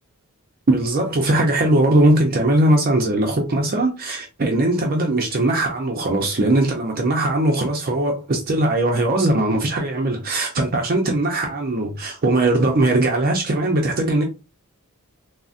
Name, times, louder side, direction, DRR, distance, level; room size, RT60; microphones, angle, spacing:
voice 1, 0.7-14.2, right 1 dB, 40° right, 0.5 m, -20 dB
3.7 x 2.1 x 2.4 m
head